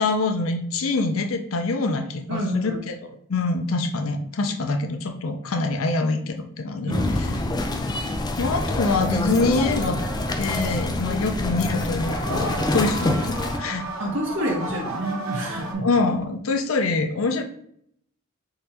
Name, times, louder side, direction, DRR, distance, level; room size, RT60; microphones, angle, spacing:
voice 1, 0.0-6.9 8.4-10.0 10.4-13.9 15.8-17.4, left 3 dB, 80° left, 6 dB, 0.5 m, -25 dB
voice 2, 2.3-2.8 6.9-7.4 14.0-15.8, equal, 65° right, -2 dB, 1.3 m, -28 dB
sound 1, 6.9-13.6, left 2 dB, 20° left, 0.4 m, -26 dB
sound 2, 9.4-11.2 11.9-15.7, right 2 dB, 85° right, 0.8 m, -34 dB
3.9 x 2.6 x 4.3 m, 0.68 s
head